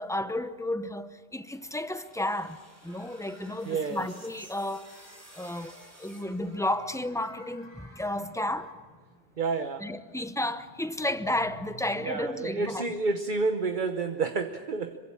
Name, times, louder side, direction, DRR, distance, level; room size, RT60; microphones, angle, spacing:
voice 1, 0.0-4.9 5.3-8.7 9.8-12.8, left 1 dB, 5° left, 0.8 m, -32 dB
sound 1, 1.3-7.2, right 1 dB, 15° right, 2.9 m, -55 dB
sound 2, 2.9-8.7, right 1 dB, 90° right, 4.6 m, -56 dB
voice 2, 3.6-4.1 9.4-9.9 12.0-15.0, right 4 dB, 50° right, 1.1 m, -29 dB
sound 3, 6.4-13.0, right 1 dB, 35° right, 3.5 m, -55 dB
26.5 x 24.5 x 7.3 m
omnidirectional pair, 1.1 m